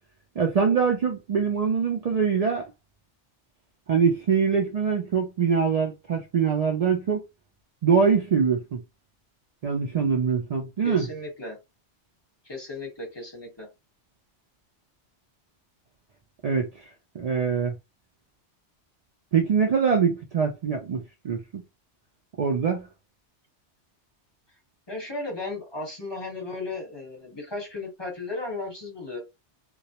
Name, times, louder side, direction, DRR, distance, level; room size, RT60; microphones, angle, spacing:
voice 1, 0.4-2.7 3.9-7.2 7.8-8.8 9.6-11.1 16.4-16.7 17.1-17.7 19.3-21.6 22.4-22.9, right 6 dB, 80° right, 0.3 m, -23 dB
voice 2, 10.8-11.6 12.4-13.7 24.9-29.2, left 2 dB, 25° left, 1.1 m, -35 dB
2.3 x 2.1 x 2.8 m
omnidirectional pair, 1.2 m